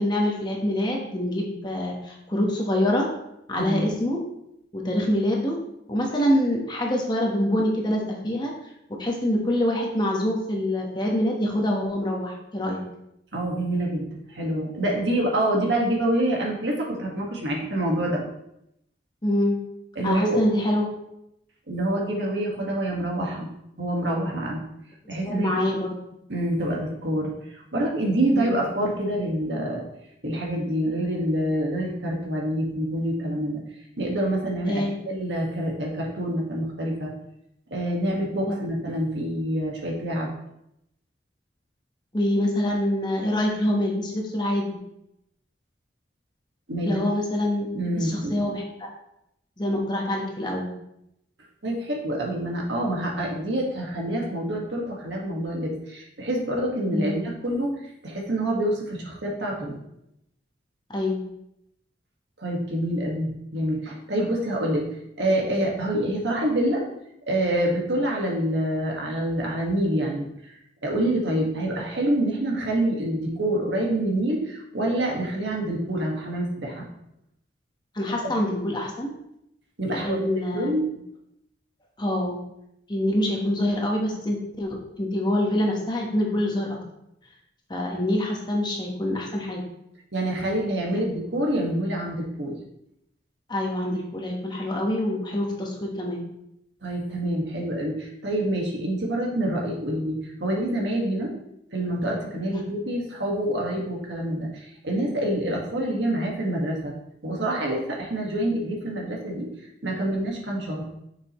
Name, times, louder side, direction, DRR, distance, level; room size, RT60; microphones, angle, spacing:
voice 1, 0.0-3.1 3.5-4.2 4.7-5.6 5.9-8.5 9.0-12.8 19.2-19.6 20.0-20.8 25.3-25.9 28.3-28.5 34.7-35.0 38.5-38.6 42.1-44.8 46.8-47.6 48.0-48.9 49.6-50.7 56.9-57.1 60.9-61.2 77.9-79.1 79.9-80.7 82.0-82.4 82.9-86.8 87.7-89.6 93.5-96.3, left 1 dB, 25° left, -1 dB, 1.2 m, -25 dB
voice 2, 3.5-3.9 13.3-18.2 19.9-20.4 21.7-23.5 23.8-24.6 25.1-25.5 26.3-27.3 27.7-29.8 30.2-33.6 34.0-37.1 37.7-40.3 46.7-47.0 47.7-48.4 51.6-57.7 58.0-59.8 62.4-64.9 65.2-66.8 67.3-70.3 70.8-76.9 78.2-78.3 79.8-80.2 80.5-80.8 90.1-92.5 96.8-101.3 101.7-106.9 107.2-109.5 109.8-110.9, right 1 dB, 75° right, -1 dB, 1.8 m, -26 dB
6.9 x 6.7 x 3.1 m, 0.80 s
head